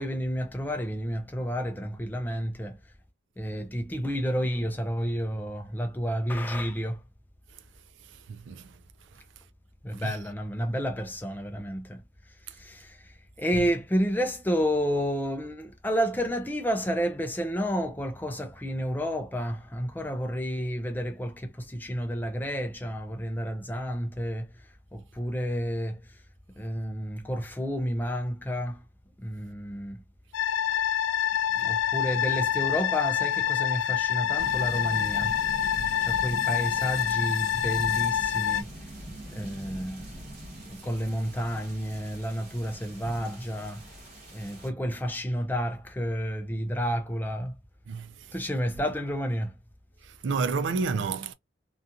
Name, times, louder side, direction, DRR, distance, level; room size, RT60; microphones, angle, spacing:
voice 1, 0.0-2.8 3.4-7.0 9.8-12.0 12.5-24.5 24.9-26.0 26.6-28.8 29.2-30.0 31.6-35.4 36.0-38.7 39.3-40.1 40.6-43.9 44.3-47.5 48.3-49.5, equal, 10° left, 0.4 m, -30 dB
voice 2, 8.3-8.7 9.9-10.2 35.8-35.9 47.9-48.3 50.0-51.3, right 4 dB, 65° right, 0.4 m, -30 dB
sound 1, 30.3-38.6, left 10 dB, 85° left, 0.3 m, -26 dB
sound 2, 34.4-44.7, right 1 dB, 30° right, 1.2 m, -43 dB
2.7 x 2.3 x 2.4 m
head